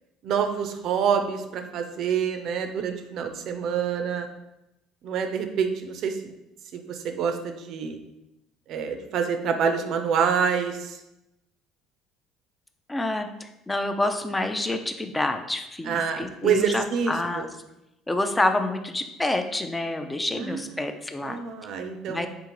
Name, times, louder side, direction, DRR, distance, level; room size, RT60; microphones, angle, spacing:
voice 1, 0.2-4.3 5.0-6.3 6.7-8.0 8.7-11.0 15.9-17.5 20.4-20.6 21.2-22.3, right 7 dB, 60° right, 6 dB, 0.5 m, -27 dB
voice 2, 12.9-17.5 18.1-21.4 22.1-22.3, left 2 dB, 15° left, 7 dB, 0.4 m, -28 dB
3.6 x 3.5 x 3.0 m, 0.90 s
hypercardioid pair, 70°, 0 cm